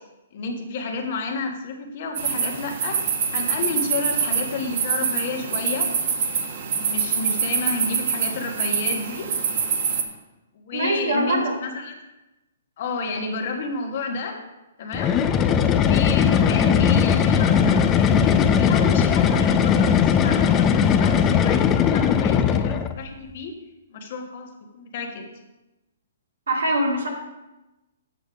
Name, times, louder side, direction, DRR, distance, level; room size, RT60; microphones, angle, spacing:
voice 1, 0.3-5.9 6.7-9.3 10.5-12.0 12.8-14.4 14.8-15.1 15.7-23.5 23.9-25.3, left 3 dB, 50° left, 3 dB, 1.5 m, -31 dB
sound 1, 2.1-10.0, right 6 dB, 55° right, 1.2 m, -25 dB
voice 2, 10.7-11.6 26.5-27.1, right 1 dB, 85° right, -1 dB, 2.1 m, -23 dB
sound 2, 14.9-23.0, left 7 dB, 20° left, 0.5 m, -19 dB
7.7 x 6.8 x 4.9 m, 1.0 s
hypercardioid pair, 140°, 0 cm